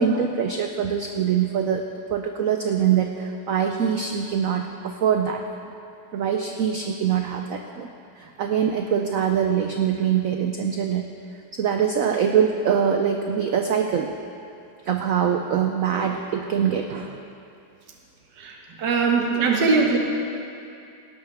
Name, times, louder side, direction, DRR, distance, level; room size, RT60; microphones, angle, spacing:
voice 1, 0.0-1.8 2.1-5.4 6.1-7.9 8.2-11.1 11.5-14.1 14.8-17.2 19.2-19.3, right 8 dB, 85° right, 4 dB, 0.7 m, -23 dB
voice 2, 18.4-20.0, right 4 dB, 60° right, 0 dB, 1.9 m, -21 dB
17.5 x 11.5 x 3.5 m, 2.5 s
omnidirectional pair, 2.2 m